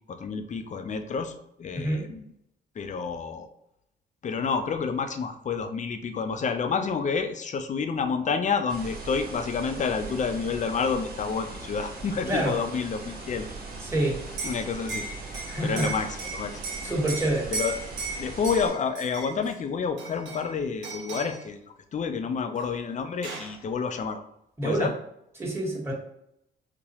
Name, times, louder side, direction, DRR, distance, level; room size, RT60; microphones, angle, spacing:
voice 1, 0.1-1.3 1.6-2.2 2.8-3.5 4.2-13.5 14.4-15.1 15.6-16.5 17.5-17.7 18.2-21.6 21.9-24.2 24.6-24.9, left 5 dB, 40° left, 8 dB, 0.5 m, -29 dB
voice 2, 1.7-2.1 12.3-12.6 13.8-14.2 15.5-16.0 16.8-17.5 24.6-24.9 25.4-25.9, right 1 dB, 10° right, -3 dB, 1.3 m, -27 dB
sound 1, 8.7-18.7, right 3 dB, 50° right, 1.2 m, -40 dB
Liquid, 14.2-19.5 20.0-20.5 20.8-21.4 22.6-22.7 22.9-23.6, right 4 dB, 80° right, 0.8 m, -36 dB
4.0 x 2.2 x 3.0 m, 0.77 s
supercardioid pair, 65°, 19 cm